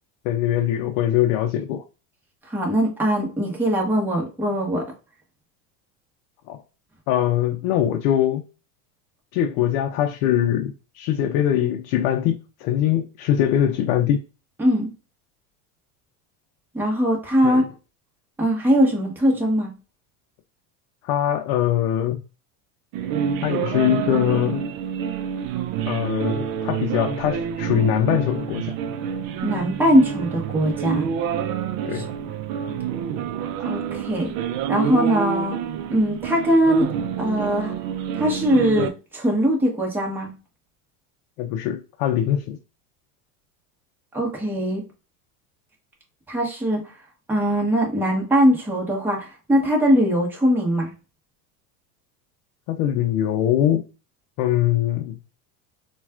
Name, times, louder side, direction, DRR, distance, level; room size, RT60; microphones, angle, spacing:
voice 1, 0.2-1.8 6.5-6.6 7.1-8.4 9.3-14.2 17.4-17.7 21.0-22.2 23.4-24.6 25.9-28.7 31.9-32.1 41.4-42.6 52.7-53.8 54.4-55.2, left 11 dB, 70° left, 0.6 m, -22 dB
voice 2, 2.5-4.8 14.6-14.9 16.7-17.6 18.4-19.7 29.4-31.1 31.9-32.0 33.6-34.3 34.7-35.6 35.9-36.9 37.2-37.7 38.1-40.3 44.1-44.8 46.3-46.8 47.3-50.9, equal, 5° right, 1.0 m, -21 dB
sound 1, 22.9-38.9, right 8 dB, 55° right, 0.5 m, -28 dB
4.0 x 2.3 x 2.3 m
supercardioid pair, 115°, 42 cm